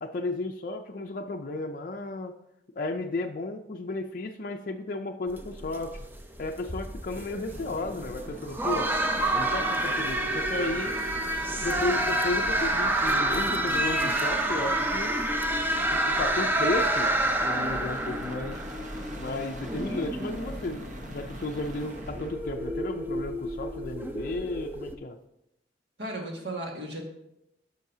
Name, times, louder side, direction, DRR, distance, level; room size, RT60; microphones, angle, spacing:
voice 1, 0.0-2.3 2.8-6.0 6.4-8.9 9.3-11.0 11.6-15.1 15.7-17.1 17.4-18.6 19.2-25.2, left 2 dB, 50° left, 3 dB, 0.4 m, -33 dB
sound 1, 5.3-24.9, right 1 dB, 10° right, 0.5 m, -29 dB
sound 2, 7.4-22.4 24.2-24.7, right 1 dB, 45° right, 1.0 m, -42 dB
voice 2, 26.0-27.0, right 1 dB, 70° right, 0 dB, 1.8 m, -35 dB
10.0 x 6.3 x 2.7 m, 0.83 s
head